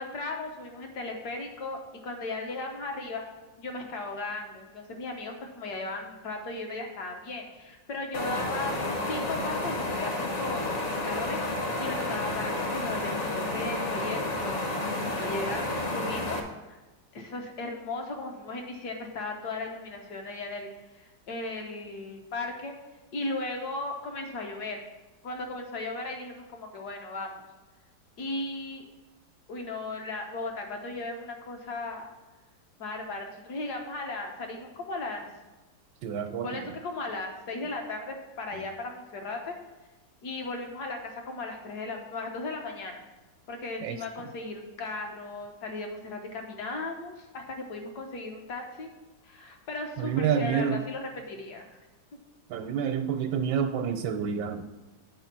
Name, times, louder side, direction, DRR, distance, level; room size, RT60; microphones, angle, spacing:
voice 1, 0.0-3.2 3.6-11.4 11.8-14.6 15.0-16.8 17.1-22.7 23.1-24.8 25.2-27.4 28.2-28.8 29.5-32.1 32.8-35.3 36.4-39.5 40.2-43.0 43.5-48.9 49.2-51.7, left 2 dB, 70° left, 2 dB, 1.6 m, -36 dB
sound 1, 8.1-16.4, left 2 dB, 50° left, 1.2 m, -31 dB
voice 2, 36.0-36.5 43.8-44.0 50.0-50.8 52.5-54.6, right 7 dB, 85° right, 6 dB, 1.2 m, -28 dB
8.7 x 4.5 x 5.9 m, 1.2 s
omnidirectional pair, 1.8 m